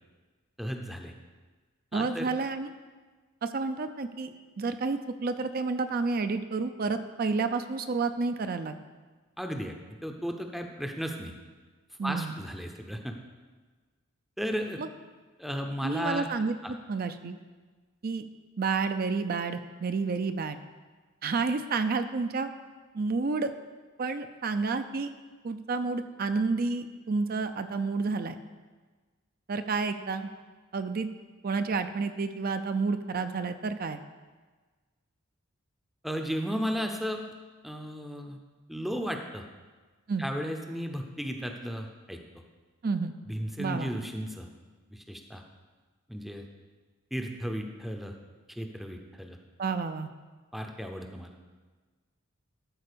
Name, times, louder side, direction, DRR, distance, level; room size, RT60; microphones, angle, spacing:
voice 1, 0.6-1.1 1.9-2.3 9.4-9.8 10.0-11.3 12.0-13.2 14.4-14.8 15.4-16.3 16.6-16.7 36.0-37.2 37.6-38.4 38.7-39.4 40.2-42.2 43.3-44.5 44.9-45.4 46.1-46.4 47.1-48.1 48.5-49.4 50.5-51.3, equal, ahead, 3 dB, 0.6 m, -34 dB
voice 2, 1.9-2.7 3.4-8.8 12.0-12.4 14.8-14.9 15.8-16.5 16.9-17.4 18.0-18.3 18.6-20.6 21.2-22.5 22.9-23.5 24.0-25.1 25.4-28.4 29.5-30.3 30.7-31.1 31.4-34.0 40.1-40.3 42.8-43.1 43.6-43.9 49.6-50.1, right 4 dB, 45° right, 9 dB, 0.4 m, -30 dB
12.5 x 4.3 x 6.8 m, 1.4 s
head